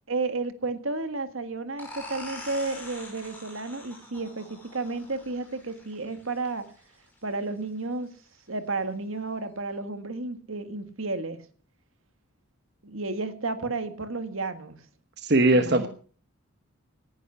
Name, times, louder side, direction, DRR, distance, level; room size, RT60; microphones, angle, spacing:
voice 1, 0.1-6.7 7.2-8.1 8.5-11.5 12.8-14.8 15.5-15.9, right 3 dB, 65° right, 9 dB, 1.7 m, -32 dB
sound 1, 1.8-7.2, left 1 dB, 10° left, 5.1 m, -44 dB
voice 2, 15.2-15.9, right 2 dB, 50° right, 7 dB, 1.2 m, -20 dB
18.0 x 10.5 x 5.7 m, 0.43 s
head